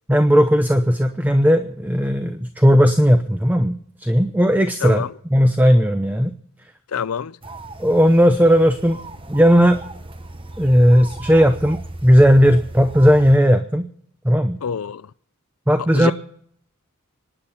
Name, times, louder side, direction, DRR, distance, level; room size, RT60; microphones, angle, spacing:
voice 1, 0.1-5.0 5.3-6.3 7.8-9.0 9.3-9.8 10.6-13.8 14.2-14.6 15.7-16.1, equal, 10° right, 0.7 m, -16 dB
voice 2, 4.8-5.1 6.9-7.4 14.6-15.1 15.9-16.1, left 7 dB, 75° left, 0.5 m, -26 dB
sound 1, 7.4-13.4, right 2 dB, 25° right, 1.0 m, -36 dB
25.5 x 10.0 x 4.2 m
head